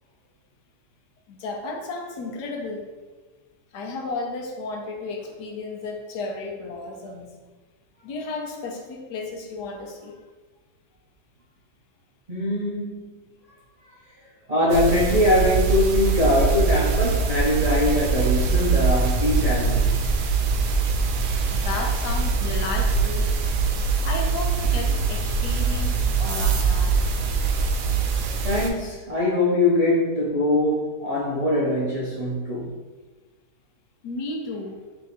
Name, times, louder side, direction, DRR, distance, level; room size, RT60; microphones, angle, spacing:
voice 1, 1.3-2.9 3.7-7.3 8.0-10.2 21.5-23.5 24.0-27.0 34.0-34.8, left 3 dB, 85° left, 2 dB, 1.3 m, -33 dB
voice 2, 12.3-13.2 14.5-19.9 28.4-32.7, left 1 dB, 65° right, -6 dB, 0.3 m, -22 dB
sound 1, 14.7-28.7, right 4 dB, 85° right, 1.1 m, -23 dB
3.3 x 2.8 x 4.1 m, 1.3 s
omnidirectional pair, 1.7 m